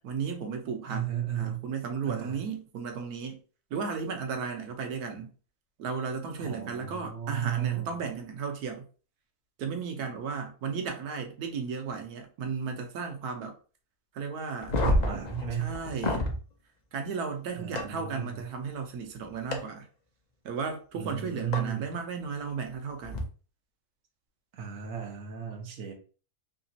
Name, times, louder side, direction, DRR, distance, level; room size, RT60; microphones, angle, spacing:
voice 1, 0.0-1.1 1.3-3.4 3.7-5.3 5.8-8.9 9.6-13.5 14.1-14.8 15.1-15.2 15.6-16.3 16.9-19.9 20.4-23.3, right 5 dB, 90° right, 1.2 m, -34 dB
voice 2, 0.9-1.6 2.1-2.4 6.4-7.9 14.8-15.7 17.6-18.4 20.9-21.8 24.5-25.9, right 9 dB, 65° right, 1.2 m, -34 dB
sound 1, 14.6-16.4 17.8-17.9 19.5-19.6 21.5-21.6 23.0-23.2, left 1 dB, 60° left, 0.4 m, -28 dB
3.4 x 2.9 x 2.7 m
omnidirectional pair, 1.6 m